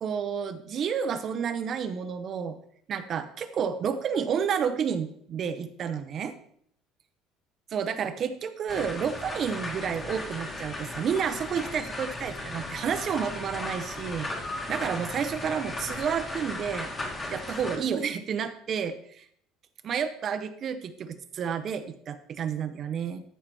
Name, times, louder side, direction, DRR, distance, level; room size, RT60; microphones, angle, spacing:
voice 1, 0.0-2.6 2.9-6.3 7.7-14.3 14.7-16.9 17.3-19.3 19.8-23.2, right 7 dB, 35° right, 9 dB, 0.7 m, -30 dB
sound 1, 8.7-17.8, left 2 dB, 20° left, 1.5 m, -36 dB
13.5 x 5.7 x 4.5 m, 0.65 s
cardioid pair, 150°, 0 cm